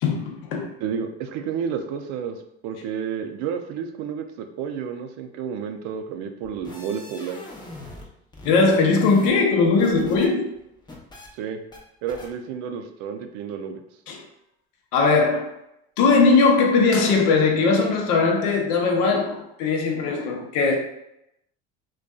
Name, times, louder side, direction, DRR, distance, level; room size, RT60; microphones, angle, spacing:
voice 1, 0.0-0.7 8.4-10.5 14.1-14.2 14.9-15.5 16.0-20.7, left 4 dB, 65° left, 0.7 m, -19 dB
voice 2, 0.8-2.4 2.6-7.4 11.4-11.6 12.0-13.8, right 7 dB, 60° right, 0.4 m, -31 dB
sound 1, 6.4-8.1 8.3-10.3 10.6-11.3 11.7-11.8 12.1-12.3, left 2 dB, 15° left, 0.6 m, -40 dB
2.5 x 2.3 x 2.2 m
hypercardioid pair, 85°, 32 cm